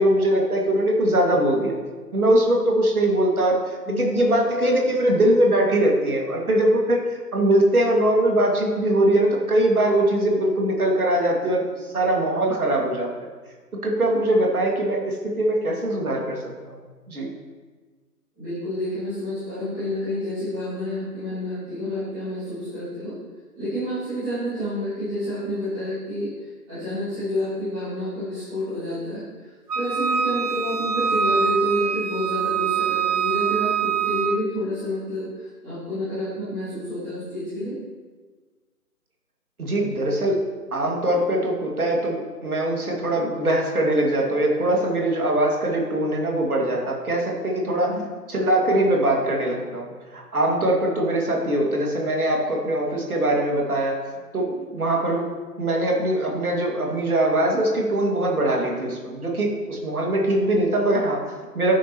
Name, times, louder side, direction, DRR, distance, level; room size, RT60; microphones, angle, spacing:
voice 1, 0.0-1.7 2.1-13.1 13.8-16.4 16.6-16.8 17.1-17.3 39.6-40.4 40.7-48.0 48.3-54.0 54.3-55.3 55.6-61.8, right 1 dB, 65° right, -1 dB, 2.4 m, -22 dB
voice 2, 3.8-4.2 18.4-23.1 23.6-26.3 26.7-29.5 29.7-37.8 47.6-48.0, equal, 10° right, -17 dB, 2.8 m, -29 dB
Wind instrument woodwind instrument, 29.7-34.4, right 7 dB, 90° right, 0.9 m, -24 dB
10.0 x 9.9 x 3.1 m, 1.4 s
figure-of-eight pair, 155°, 47 cm